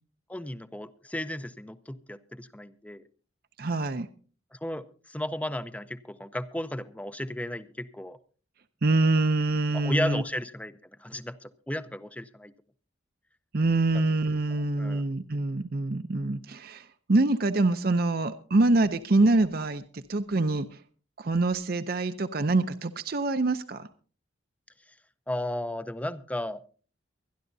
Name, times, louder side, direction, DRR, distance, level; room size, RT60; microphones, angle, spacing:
voice 1, 0.3-3.0 4.5-8.2 9.7-12.5 14.8-15.1 25.3-26.6, left 1 dB, 5° left, 0.5 m, -34 dB
voice 2, 3.6-4.1 8.8-10.2 13.5-20.8 21.2-23.9, right 2 dB, 50° right, 0.6 m, -25 dB
24.0 x 11.5 x 2.7 m
head